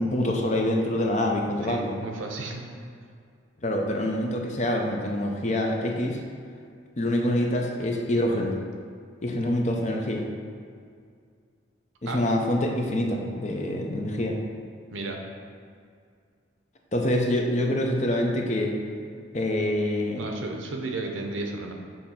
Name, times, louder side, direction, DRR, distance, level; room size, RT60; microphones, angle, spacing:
voice 1, 0.0-1.9 3.6-6.2 7.0-8.5 9.2-10.2 12.0-14.4 16.9-18.7 19.3-20.3, left 1 dB, 35° left, 1 dB, 0.6 m, -26 dB
voice 2, 1.7-2.6 12.1-12.2 14.9-15.2 20.2-21.7, right 3 dB, 80° right, 2 dB, 0.7 m, -33 dB
6.5 x 2.8 x 5.6 m, 2.2 s
head